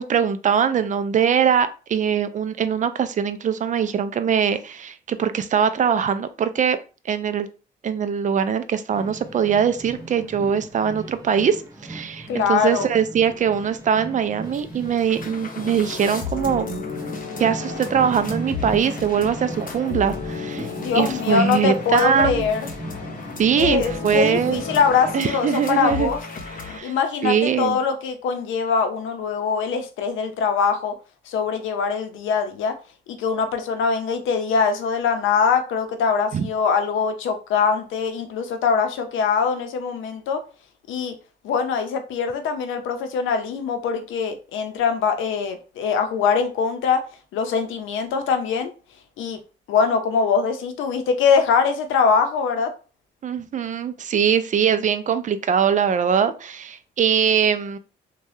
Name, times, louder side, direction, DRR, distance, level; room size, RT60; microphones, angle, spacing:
voice 1, 0.0-6.8 7.1-7.5 7.8-16.8 17.4-20.7 20.9-22.5 23.4-24.6 25.1-26.1 26.6-26.9 27.2-27.8 36.3-36.5 53.2-57.8, right 7 dB, 40° right, 0.4 m, -22 dB
sound 1, 8.9-25.1, right 2 dB, 20° right, 0.8 m, -37 dB
voice 2, 12.3-12.9 20.8-22.7 23.6-26.2 26.8-30.9 31.3-32.8 33.1-40.4 40.9-41.1 41.4-47.0 47.3-48.7 49.2-49.4 49.7-52.7, left 6 dB, 80° left, 0.6 m, -22 dB
sound 2, 14.5-14.6 14.9-26.8, left 5 dB, 45° left, 0.7 m, -33 dB
3.2 x 2.2 x 2.6 m
cardioid pair, 90°, 20 cm